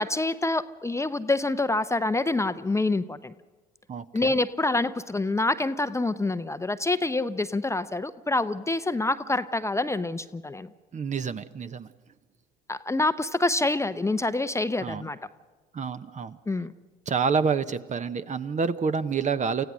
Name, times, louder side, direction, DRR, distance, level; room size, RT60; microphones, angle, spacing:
voice 1, 0.0-3.3 4.1-10.7 12.7-15.2 16.5-16.7, left 2 dB, 15° left, 12 dB, 0.8 m, -26 dB
voice 2, 3.9-4.3 10.9-11.9 14.8-15.1 15.7-16.4 17.1-19.6, right 5 dB, 35° right, 12 dB, 1.0 m, -28 dB
29.0 x 15.5 x 6.3 m, 1.4 s
figure-of-eight pair, 55°, 21 cm